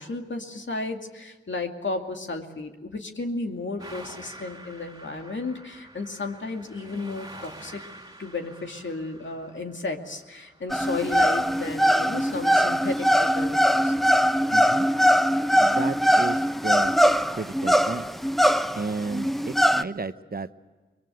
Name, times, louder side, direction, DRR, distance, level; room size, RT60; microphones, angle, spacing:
voice 1, 0.0-7.8 8.2-14.0, left 3 dB, 70° left, 4 dB, 2.4 m, -33 dB
sound 1, 3.8-13.1 14.3-14.4 15.3-15.4, right 1 dB, 20° right, 2.9 m, -48 dB
sound 2, 10.7-19.8, equal, ahead, 0.7 m, -21 dB
voice 2, 14.5-14.9 15.6-16.9 17.3-18.1 18.7-20.5, right 4 dB, 50° right, 12 dB, 0.9 m, -33 dB
23.0 x 22.0 x 7.9 m, 1.3 s
cardioid pair, 40°, 20 cm